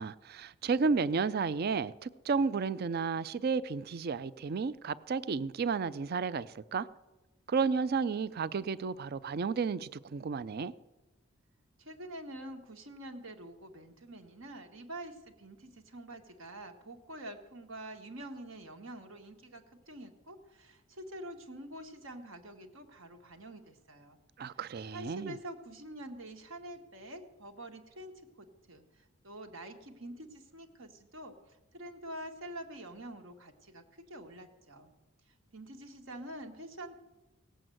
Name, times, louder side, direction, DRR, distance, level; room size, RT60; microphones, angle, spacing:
voice 1, 0.0-6.9 7.5-10.7 24.4-25.3, right 5 dB, 50° right, 0.4 m, -32 dB
voice 2, 11.8-24.2 24.9-34.9 35.3-37.0, right 1 dB, 70° right, 1.6 m, -46 dB
17.5 x 7.9 x 7.7 m
head